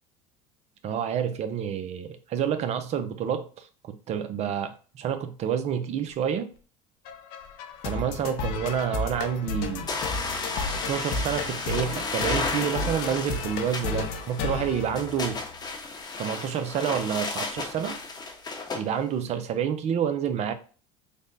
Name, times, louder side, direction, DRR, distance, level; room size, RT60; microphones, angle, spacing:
voice 1, 0.8-3.7 4.1-6.5 7.8-9.9 10.6-15.4 16.2-17.9 18.7-20.5, right 8 dB, 45° right, 0.6 m, -28 dB
sound 1, 7.1-15.6, left 4 dB, 70° left, 0.6 m, -33 dB
sound 2, 9.9-18.8, left 3 dB, 25° left, 0.8 m, -33 dB
3.4 x 2.1 x 3.9 m
supercardioid pair, 100°, 15 cm